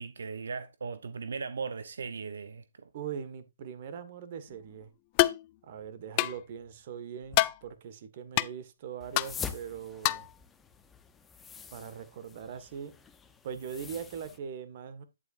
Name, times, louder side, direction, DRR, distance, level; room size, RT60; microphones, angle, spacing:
voice 1, 0.0-2.9, right 5 dB, 75° right, 1.0 m, -38 dB
voice 2, 2.9-4.9 5.6-10.3 11.7-12.9 13.4-15.0, right 7 dB, 45° right, 1.7 m, -41 dB
sound 1, 5.2-5.4 6.2-6.4 7.3-7.6 8.4-8.5 9.2-9.3 10.0-10.3, left 19 dB, 30° left, 0.4 m, -25 dB
sound 2, 9.0-14.4, left 6 dB, 10° left, 0.8 m, -45 dB
9.6 x 8.3 x 2.6 m
hypercardioid pair, 150°, 0 cm